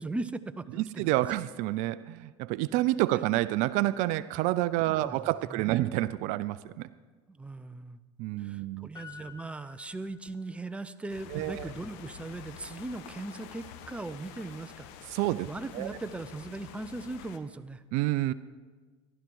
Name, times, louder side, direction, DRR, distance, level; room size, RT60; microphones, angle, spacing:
voice 1, 0.0-1.1 4.9-5.9 7.3-8.0 8.4-15.2 15.5-17.8, right 2 dB, 10° right, 11 dB, 0.6 m, -39 dB
voice 2, 0.8-6.9 8.2-8.9 11.3-11.7 15.1-15.5 15.7-16.0 17.9-18.3, right 16 dB, 55° right, 16 dB, 0.4 m, -28 dB
Piano, 8.9-10.7 11.0-11.1, left 6 dB, 25° left, 1.5 m, -50 dB
sound 1, 11.1-17.4, left 9 dB, 65° left, 1.1 m, -48 dB
15.0 x 12.0 x 4.6 m, 1.4 s
hypercardioid pair, 90°, 15 cm